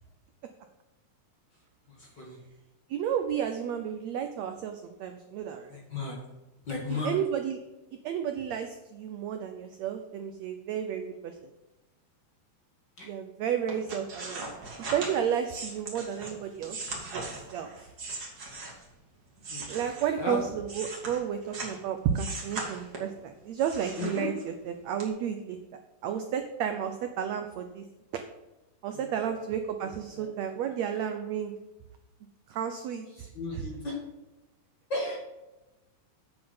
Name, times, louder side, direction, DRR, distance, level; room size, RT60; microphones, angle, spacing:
voice 1, 2.0-2.4 5.7-6.2 6.7-7.2 13.0-13.1 19.5-19.7 20.2-20.4 24.0-24.3 29.2-29.3 30.1-30.3 30.6-30.7 33.2-33.9 34.9-35.2, left 2 dB, 40° left, -1 dB, 2.0 m, -34 dB
voice 2, 2.9-5.8 6.9-7.6 8.0-11.5 13.0-14.4 14.9-17.9 19.7-25.6 26.0-27.8 28.1-28.2 28.8-31.5 32.5-33.3 33.5-33.6, right 8 dB, 80° right, 6 dB, 1.5 m, -32 dB
sound 1, 13.7-18.9 19.4-21.8 22.1-23.2 23.6-24.6 25.0-25.1, right 3 dB, 35° right, 2.1 m, -39 dB
9.4 x 7.7 x 5.6 m, 1.0 s
omnidirectional pair, 4.0 m